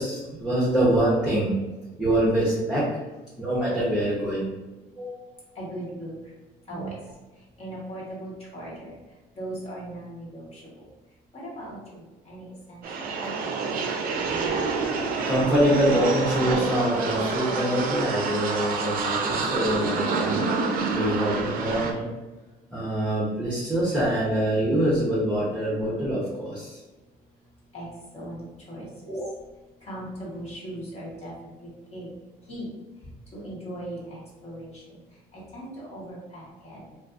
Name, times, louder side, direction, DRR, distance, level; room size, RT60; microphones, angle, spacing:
voice 1, 0.0-1.5 2.0-3.0 3.4-4.5 5.0-5.4 6.7-6.8 14.3-15.0 15.3-22.1 22.7-26.8 29.1-29.2, right 1 dB, 5° right, -8 dB, 0.7 m, -25 dB
voice 2, 5.5-6.3 6.7-6.9 7.6-9.0 9.4-10.9 11.3-13.7 27.7-27.9 28.1-29.2 29.8-32.1 32.5-32.7 33.3-35.0 35.3-37.0, right 1 dB, 40° left, -5 dB, 1.0 m, -39 dB
sound 1, 12.8-21.9, right 4 dB, 60° right, 0.5 m, -27 dB
2.5 x 2.4 x 2.4 m, 1.2 s
cardioid pair, 110°, 17 cm